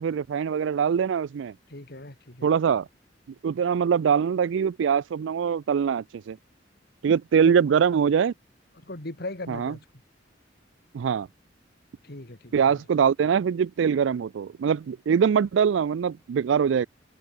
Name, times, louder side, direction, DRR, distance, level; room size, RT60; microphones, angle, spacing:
voice 1, 0.0-1.5 2.4-2.9 3.4-6.4 7.0-8.3 9.5-9.7 10.9-11.3 12.5-16.9, right 7 dB, 75° right, 0.3 m, -23 dB
voice 2, 1.7-2.5 7.5-7.6 8.8-9.8 12.0-12.8, left 2 dB, 55° left, 2.6 m, -38 dB
open air
head